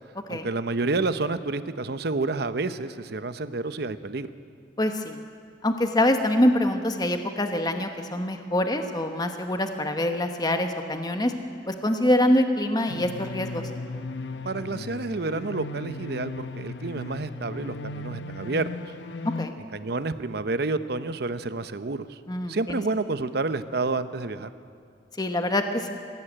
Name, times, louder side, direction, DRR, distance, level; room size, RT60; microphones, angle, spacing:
voice 1, 0.3-4.3 14.4-18.7 19.7-22.2 22.5-24.5, right 3 dB, 65° right, 12 dB, 0.8 m, -29 dB
voice 2, 4.8-5.2 5.6-11.3 11.7-13.7 19.4-19.5 22.3-22.8 25.2-25.9, left 1 dB, 25° left, 6 dB, 1.1 m, -25 dB
sound 1, 12.9-19.5, left 2 dB, 80° left, 0.8 m, -36 dB
21.5 x 16.5 x 8.8 m, 2.3 s
head